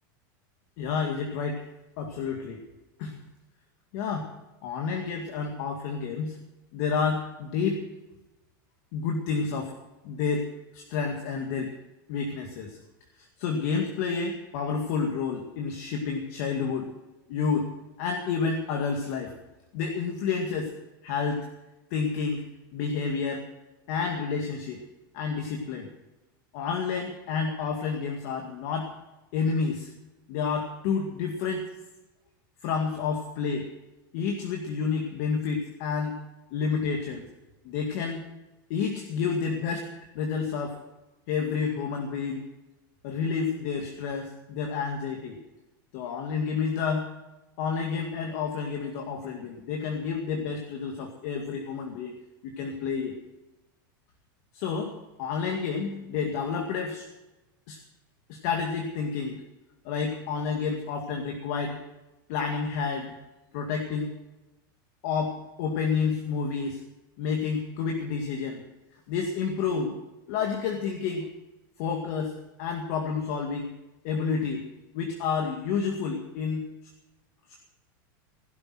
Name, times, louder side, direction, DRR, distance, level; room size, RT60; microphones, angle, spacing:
voice 1, 0.8-1.6 2.0-2.6 3.0-3.2 3.9-4.3 4.6-6.4 6.7-7.9 8.9-9.7 10.0-11.7 12.1-12.8 13.2-16.9 17.3-17.7 18.0-19.3 19.7-20.7 21.0-21.5 21.9-22.5 22.7-23.4 23.9-24.8 25.1-25.9 26.5-28.9 29.3-29.9 30.3-31.7 32.6-33.7 34.1-36.2 36.5-37.2 37.6-38.2 38.7-39.9 40.1-40.8 41.3-42.5 43.0-45.4 45.9-47.1 47.6-52.1 52.4-53.1 54.5-57.1 57.7-57.8 58.3-59.4 59.8-61.8 62.3-63.1 63.5-64.2 65.0-66.8 67.2-68.6 69.1-70.0 70.3-71.3 71.8-73.7 74.0-74.7 74.9-76.6, left 5 dB, 45° left, 2 dB, 2.1 m, -30 dB
16.0 x 12.5 x 6.0 m, 1.0 s
supercardioid pair, 175°, 11 cm